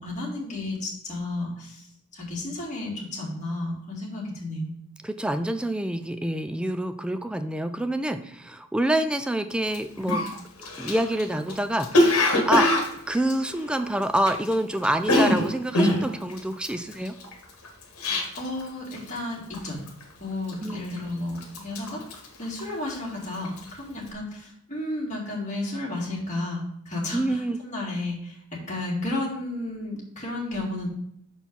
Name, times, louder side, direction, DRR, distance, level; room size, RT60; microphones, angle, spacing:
voice 1, 0.0-1.9 2.1-4.7 18.3-19.8 20.2-22.0 22.4-30.9, left 2 dB, 35° left, -3 dB, 2.1 m, -32 dB
voice 2, 5.0-10.3 10.8-12.7 13.1-17.2 20.6-20.8 27.1-27.6, right 1 dB, 5° right, 9 dB, 0.3 m, -27 dB
Cough, 9.7-9.8 10.1-14.5 14.8-18.6 18.9-19.3 19.5-20.0 20.5-21.1 21.4-23.1 23.4-23.7, left 1 dB, 70° left, 1.3 m, -24 dB
6.0 x 4.3 x 5.2 m, 0.70 s
head